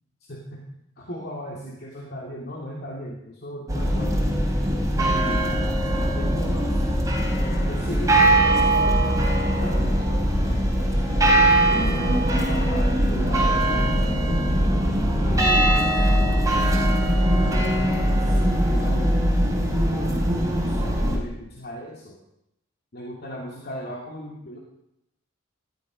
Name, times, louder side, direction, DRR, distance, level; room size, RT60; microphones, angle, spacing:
voice 1, 0.2-0.6 1.0-4.3 5.0-5.4 6.0-6.8 7.4-10.3 11.1-14.4 15.2-16.9 17.2-19.3 19.7-20.1 20.5-22.2 22.9-24.6, equal, 50° left, -3 dB, 2.8 m, -37 dB
sound 1, 3.7-21.2, right 1 dB, 15° right, 3.3 m, -21 dB
20.0 x 13.0 x 5.3 m, 0.83 s
head